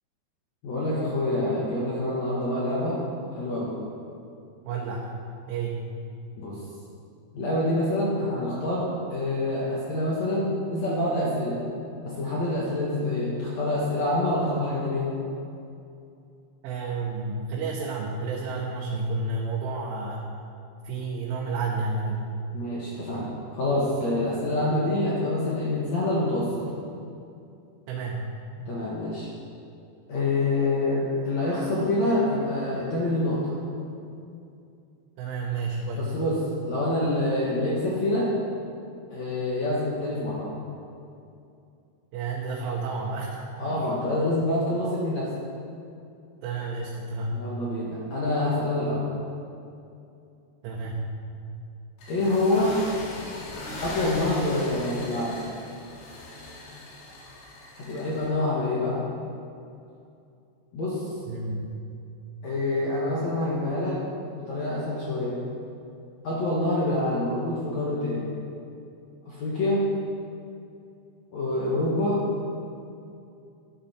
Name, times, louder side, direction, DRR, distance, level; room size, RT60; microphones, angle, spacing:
voice 1, 0.6-3.0 3.3-3.8 6.4-6.6 7.3-11.6 12.0-15.1 22.5-26.7 28.7-29.3 30.1-33.5 35.9-38.3 39.1-40.5 43.6-45.3 47.3-49.0 52.1-52.8 53.8-55.4 57.8-59.0 60.7-61.0 62.4-64.0 64.3-65.4 66.2-68.3 69.3-69.8 71.3-72.2, left 1 dB, 70° left, -5 dB, 1.6 m, -26 dB
voice 2, 4.7-5.1 5.5-5.9 16.6-20.3 20.8-22.3 27.9-28.4 35.2-36.2 42.1-43.9 46.4-47.5 50.6-51.2 61.3-61.7, right 3 dB, 90° right, -3 dB, 3.5 m, -31 dB
sound 1, 52.0-58.3, left 2 dB, 90° left, 4.7 m, -39 dB
12.5 x 11.0 x 4.3 m, 2.6 s
omnidirectional pair, 5.4 m